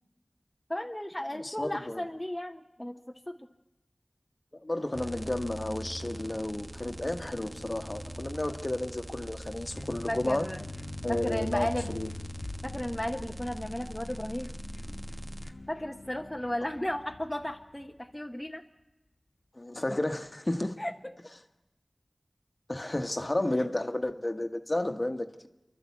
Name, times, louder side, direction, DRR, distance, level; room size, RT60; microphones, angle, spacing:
voice 1, 0.7-3.0 3.3-3.5 10.1-10.7 11.1-11.9 12.6-14.5 15.7-18.6 20.8-21.1 23.6-23.7, left 1 dB, 15° left, 3 dB, 1.0 m, -34 dB
voice 2, 1.4-2.0 4.6-10.5 11.0-12.1 19.5-20.8 22.7-25.5, left 1 dB, 40° left, 7 dB, 1.3 m, -32 dB
sound 1, 4.9-15.5, right 1 dB, 20° right, 1.1 m, -42 dB
sound 2, 9.7-18.0, left 2 dB, 70° left, 1.3 m, -45 dB
28.5 x 12.0 x 8.4 m, 0.97 s
wide cardioid pair, 55°, 0 cm